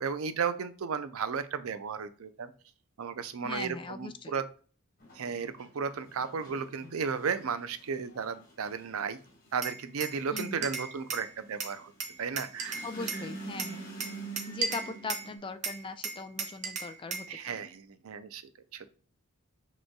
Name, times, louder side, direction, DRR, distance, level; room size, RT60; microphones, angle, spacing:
voice 1, 0.0-2.5 3.0-4.4 5.2-9.2 9.5-11.9 12.2-12.9 13.1-13.2 17.3-18.4 18.7-18.9, right 6 dB, 70° right, 12 dB, 0.5 m, -34 dB
voice 2, 3.4-4.4 10.3-10.7 12.8-13.9 14.5-17.7, left 4 dB, 25° left, 9 dB, 0.3 m, -40 dB
sound 1, 5.0-15.4, right 3 dB, 40° left, 1.5 m, -46 dB
Glass, 9.6-11.3 11.6-13.2 13.6-15.3 15.6-17.3, right 4 dB, 35° right, 0.8 m, -36 dB
6.4 x 3.1 x 2.2 m, 0.39 s
head